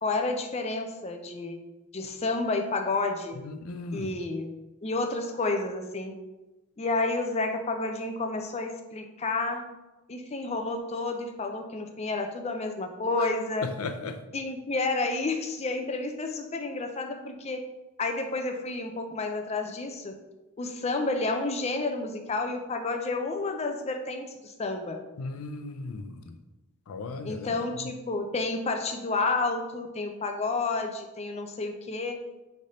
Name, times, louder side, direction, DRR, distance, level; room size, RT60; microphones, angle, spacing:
voice 1, 0.0-1.6 1.9-3.4 3.9-4.5 4.8-6.1 6.8-9.7 10.1-13.7 14.3-17.6 18.0-20.1 20.6-25.0 27.2-32.2, left 3 dB, 30° left, 5 dB, 0.4 m, -30 dB
voice 2, 3.4-4.1 13.6-14.2 25.2-26.1 26.9-27.5, left 3 dB, 85° left, 9 dB, 0.5 m, -36 dB
3.8 x 3.3 x 4.1 m, 1.0 s
head